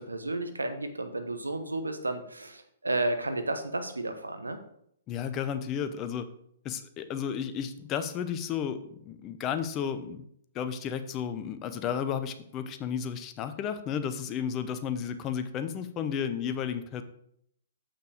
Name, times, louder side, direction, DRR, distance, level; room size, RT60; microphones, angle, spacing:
voice 1, 0.0-4.6, right 2 dB, 85° right, 8 dB, 1.0 m, -32 dB
voice 2, 5.1-6.3 6.6-10.2 10.5-17.0, left 8 dB, 30° left, 9 dB, 0.7 m, -33 dB
6.9 x 5.7 x 4.9 m, 0.70 s
figure-of-eight pair, 120°, 0 cm